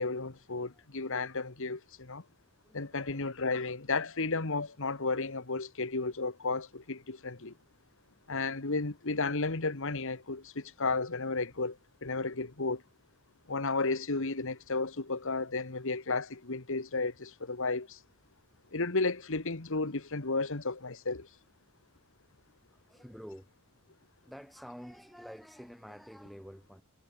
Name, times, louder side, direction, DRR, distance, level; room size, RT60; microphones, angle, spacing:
voice 1, 0.0-2.2 2.7-7.5 8.3-12.8 13.5-18.0 18.7-21.3, left 3 dB, 65° left, 1.7 m, -33 dB
voice 2, 2.6-3.3 22.7-23.5 23.9-24.0 24.2-26.8, equal, ahead, 4.8 m, -49 dB
head